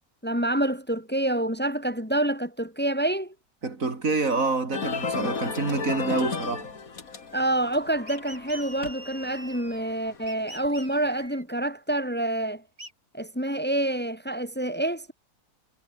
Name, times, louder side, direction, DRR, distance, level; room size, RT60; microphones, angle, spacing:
voice 1, 0.2-3.3 7.3-12.6 13.1-15.1, right 1 dB, 5° left, 2.4 m, -27 dB
voice 2, 3.6-6.7, right 3 dB, 55° right, 3.2 m, -27 dB
sound 1, 4.7-11.1, left 5 dB, 65° left, 2.7 m, -34 dB
sound 2, 8.1-9.9 10.3-11.4 12.8-12.9, right 1 dB, 25° right, 6.0 m, -44 dB
omnidirectional pair, 1.6 m